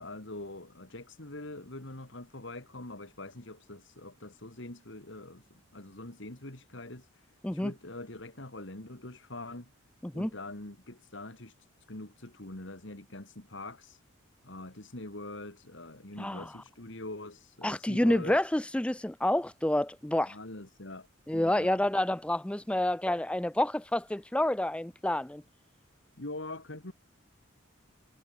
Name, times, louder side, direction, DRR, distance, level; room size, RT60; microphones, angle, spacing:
voice 1, 0.0-9.7 10.1-14.0 14.4-18.4 20.2-21.1 21.3-21.8 26.2-26.9, left 2 dB, 60° left, 2.5 m, -44 dB
voice 2, 16.2-16.5 17.6-20.4 21.3-25.4, left 1 dB, 5° left, 0.4 m, -28 dB
head